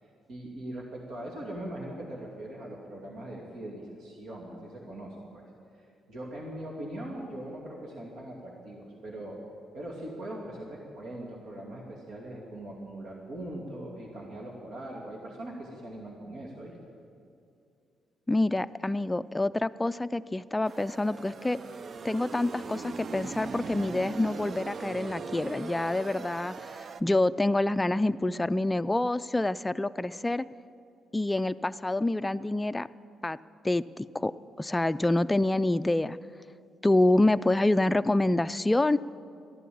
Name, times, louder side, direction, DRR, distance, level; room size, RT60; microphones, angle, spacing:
voice 1, 0.0-5.4 6.1-9.4 9.7-16.7, right 1 dB, 70° right, -2 dB, 2.4 m, -41 dB
voice 2, 18.3-21.6 22.0-30.4 31.1-32.9 33.2-33.4 33.6-34.3 34.6-36.2 36.8-39.0, left 2 dB, 15° left, 13 dB, 0.4 m, -27 dB
sound 1, 20.7-27.0, right 5 dB, 50° right, 0.5 m, -40 dB
14.0 x 11.0 x 8.6 m, 2.4 s
cardioid pair, 90°, 0 cm